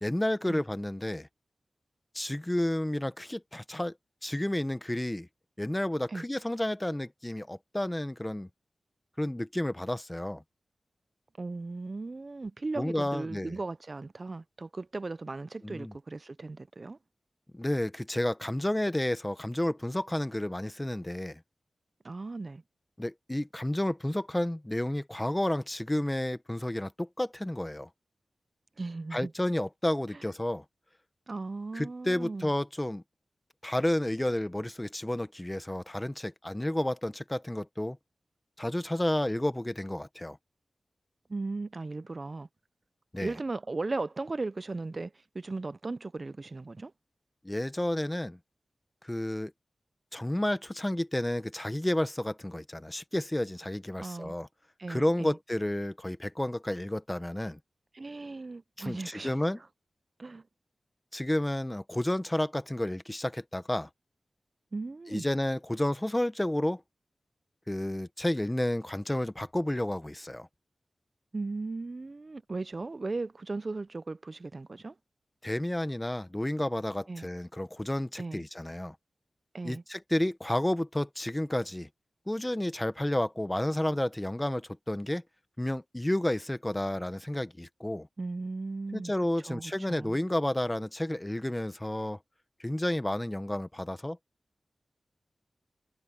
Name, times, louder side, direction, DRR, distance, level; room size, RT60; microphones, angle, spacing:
voice 1, 0.0-1.3 2.1-3.9 4.2-5.3 5.6-8.5 9.2-10.4 12.8-13.6 15.6-15.9 17.5-21.4 23.0-27.9 29.1-30.6 31.7-33.0 33.6-38.0 38.6-40.4 43.1-43.3 47.4-48.4 49.0-49.5 50.1-54.5 54.9-57.6 58.8-59.6 61.1-63.9 65.1-66.8 67.7-70.5 75.4-78.9 79.6-81.9 82.3-85.2 85.6-88.1 88.9-92.2 92.6-94.2, left 1 dB, 15° left, 1.0 m, -31 dB
voice 2, 11.4-17.0 22.0-22.6 28.8-29.3 30.1-30.2 31.3-32.5 41.3-42.5 43.2-46.9 54.0-54.3 54.8-55.4 57.9-59.4 60.2-60.4 64.7-65.3 71.3-75.0 77.1-77.3 78.2-78.4 79.5-79.8 88.2-89.1 89.4-90.2, right 3 dB, 45° right, 0.5 m, -37 dB
wide cardioid pair, 80°, 0 cm